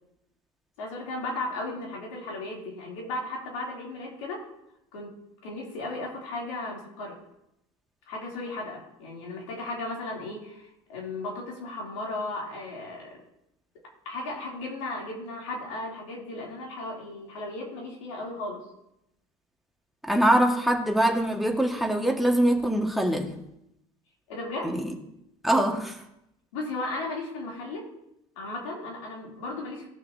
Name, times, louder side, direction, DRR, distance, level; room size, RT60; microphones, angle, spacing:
voice 1, 0.8-4.5 4.9-5.1 5.4-7.2 8.1-13.2 14.0-18.7 24.3-24.7 26.5-27.9 28.3-29.9, left 2 dB, 80° left, -2 dB, 3.2 m, -35 dB
voice 2, 20.0-23.3 24.6-24.8 25.4-26.0, right 1 dB, ahead, 1 dB, 1.8 m, -23 dB
16.5 x 6.3 x 2.8 m, 0.82 s
hypercardioid pair, 85°, 16 cm